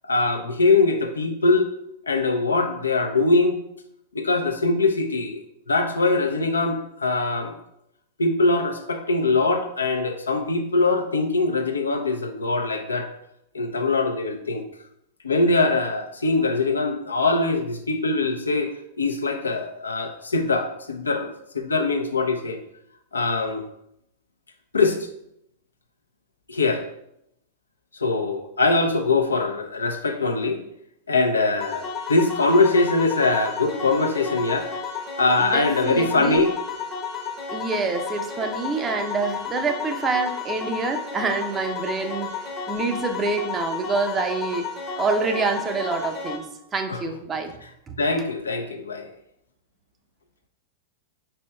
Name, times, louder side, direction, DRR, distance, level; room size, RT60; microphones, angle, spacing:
voice 1, 0.1-1.7 2.1-3.6 4.1-5.4 5.7-7.5 8.2-13.1 13.5-14.7 15.2-22.6 23.1-23.6 24.7-25.0 26.5-26.8 27.9-30.6 31.1-34.7 35.2-36.6 46.9-47.2 48.0-49.1, left 3 dB, 85° left, 5 dB, 0.5 m, -22 dB
sound 1, 31.6-46.4, left 5 dB, 40° left, 0.8 m, -32 dB
voice 2, 35.4-36.5 37.5-42.3 42.7-44.7 45.0-46.5 46.7-47.5 47.9-48.0, right 4 dB, 25° right, 6 dB, 0.5 m, -26 dB
4.3 x 4.3 x 2.2 m, 0.79 s
figure-of-eight pair, 100°, 0 cm